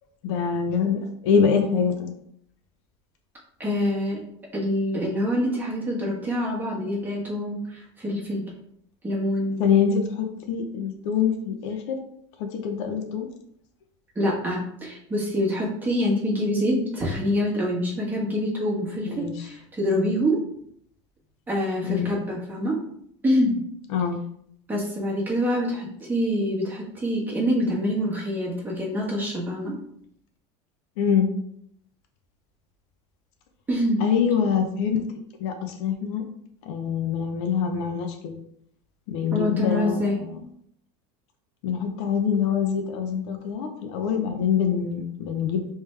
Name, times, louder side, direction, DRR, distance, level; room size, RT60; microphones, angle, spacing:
voice 1, 0.2-2.1 9.6-12.0 12.4-13.3 19.0-19.3 21.8-22.1 23.9-24.2 31.0-31.3 34.0-35.0 35.4-36.2 36.6-38.4 39.1-40.4 41.6-45.7, left 7 dB, 75° left, 5 dB, 0.7 m, -25 dB
voice 2, 3.6-4.2 4.5-8.4 9.0-9.6 14.1-20.4 21.5-22.8 23.2-23.6 24.7-29.7 33.7-34.1 39.3-40.2, equal, 10° right, -4 dB, 1.3 m, -25 dB
3.2 x 3.2 x 3.2 m, 0.69 s
supercardioid pair, 135°, 15 cm